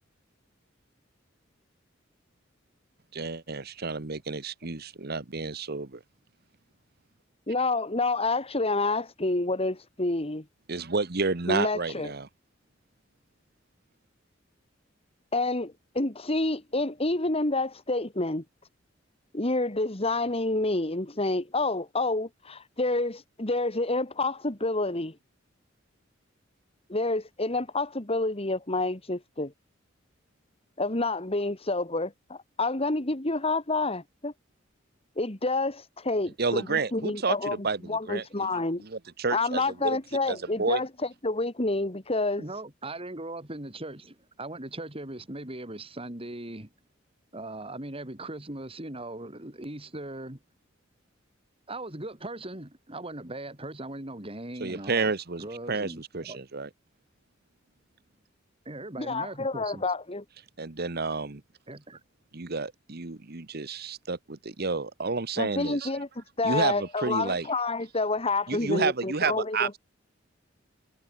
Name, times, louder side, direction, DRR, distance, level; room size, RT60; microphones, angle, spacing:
voice 1, 3.1-6.0 10.7-12.3 36.4-38.5 38.8-40.0 40.3-40.8 54.6-56.7 60.6-61.4 62.3-65.9 66.4-67.5 68.5-69.8, right 4 dB, 55° right, 1.3 m, -30 dB
voice 2, 7.5-10.4 11.5-12.1 15.3-18.4 19.3-25.1 26.9-29.5 30.8-34.3 35.2-38.8 39.3-40.9 41.2-42.4 59.0-60.2 65.4-69.8, left 2 dB, 30° left, 2.3 m, -28 dB
voice 3, 42.4-46.7 47.3-50.4 51.7-55.1 55.4-56.4 58.7-59.8 61.7-62.0, right 2 dB, 30° right, 3.4 m, -39 dB
head